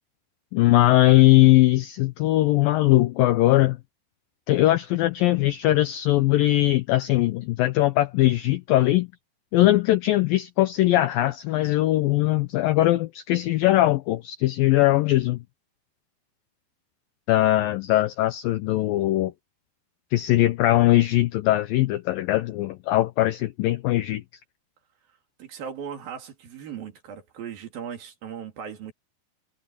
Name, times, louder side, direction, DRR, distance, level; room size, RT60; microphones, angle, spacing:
voice 1, 0.5-3.8 4.5-9.1 9.5-15.4 17.3-19.3 20.1-24.2, left 16 dB, 85° left, 2.0 m, -20 dB
voice 2, 25.4-28.9, right 7 dB, 60° right, 4.1 m, -37 dB
omnidirectional pair, 5.0 m